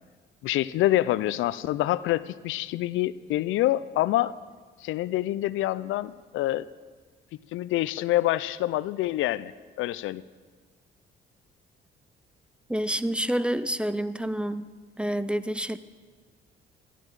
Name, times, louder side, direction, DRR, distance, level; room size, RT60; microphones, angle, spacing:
voice 1, 0.4-4.3 4.8-6.7 7.5-9.5 9.8-10.2, left 15 dB, 85° left, 17 dB, 0.4 m, -26 dB
voice 2, 12.7-14.6 15.0-15.8, right 1 dB, 5° right, 14 dB, 0.4 m, -28 dB
14.5 x 11.0 x 4.7 m, 1.5 s
cardioid pair, 90°, 20 cm